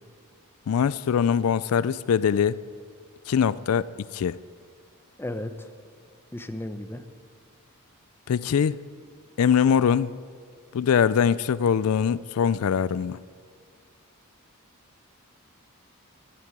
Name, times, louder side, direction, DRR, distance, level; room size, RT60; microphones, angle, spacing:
voice 1, 0.7-2.6 3.3-4.4 8.3-8.8 9.4-10.1 10.7-13.2, left 7 dB, 75° left, 0.4 m, -22 dB
voice 2, 5.2-5.5 6.3-7.0, left 1 dB, 10° left, 0.7 m, -33 dB
12.0 x 11.0 x 9.5 m
head